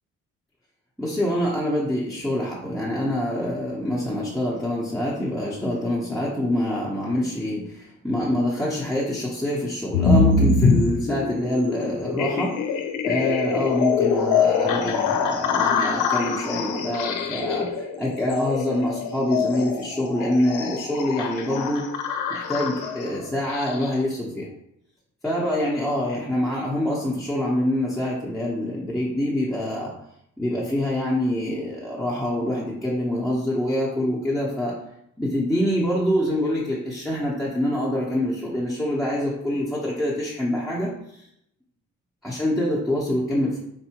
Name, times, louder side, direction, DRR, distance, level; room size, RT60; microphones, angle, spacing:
voice 1, 1.0-12.6 13.0-21.9 22.3-24.5 25.2-29.9 30.4-34.7 35.2-40.9 42.2-43.6, left 1 dB, ahead, -7 dB, 0.8 m, -25 dB
sound 1, 9.9-24.0, left 5 dB, 85° left, 0.5 m, -24 dB
4.5 x 2.7 x 2.9 m, 0.75 s
cardioid pair, 90°, 30 cm